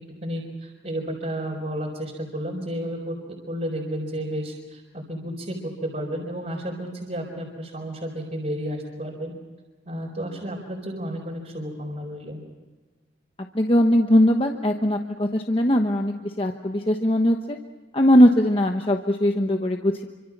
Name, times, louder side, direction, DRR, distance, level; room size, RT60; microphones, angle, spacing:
voice 1, 0.2-3.2 3.5-5.6 5.8-9.3 9.9-12.4, equal, 40° right, -2 dB, 4.4 m, -32 dB
voice 2, 13.5-17.6 17.9-20.0, equal, 30° left, 4 dB, 1.1 m, -20 dB
27.5 x 25.5 x 6.1 m, 1.3 s
head